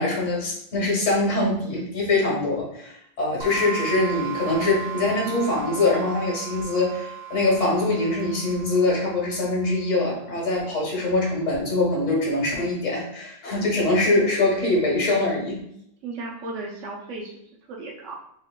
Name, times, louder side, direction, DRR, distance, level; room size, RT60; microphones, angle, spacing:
voice 1, 0.0-2.9 3.2-15.6, left 2 dB, 85° left, -3 dB, 1.8 m, -23 dB
sound 1, 3.4-9.9, right 10 dB, 35° right, 0.4 m, -36 dB
voice 2, 16.0-17.4 17.7-18.1, right 3 dB, 75° right, -3 dB, 1.1 m, -35 dB
6.3 x 2.7 x 2.2 m, 0.71 s
omnidirectional pair, 1.3 m